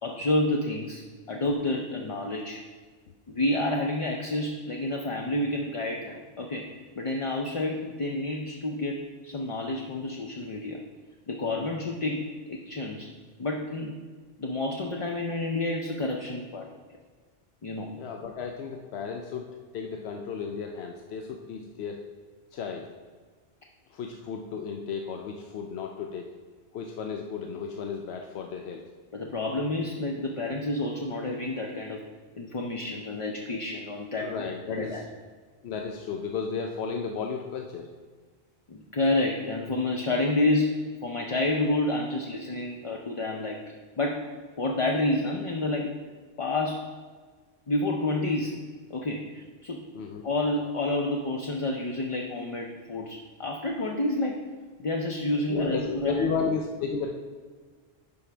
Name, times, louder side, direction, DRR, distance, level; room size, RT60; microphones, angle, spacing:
voice 1, 0.0-2.6 3.3-10.8 11.3-13.1 13.4-14.0 14.4-16.7 17.6-18.0 29.1-32.0 32.4-34.3 34.7-35.0 38.7-45.9 46.4-46.9 47.7-48.6 48.9-49.8 50.2-54.5 54.8-56.3, left 2 dB, 40° left, 1 dB, 0.5 m, -29 dB
voice 2, 17.8-19.5 19.7-22.0 22.5-22.9 23.9-26.3 26.7-28.8 34.2-35.0 35.6-37.9 50.0-50.2 55.5-57.1, left 5 dB, 85° left, 3 dB, 0.9 m, -33 dB
11.0 x 5.5 x 3.3 m, 1.5 s
omnidirectional pair, 1.1 m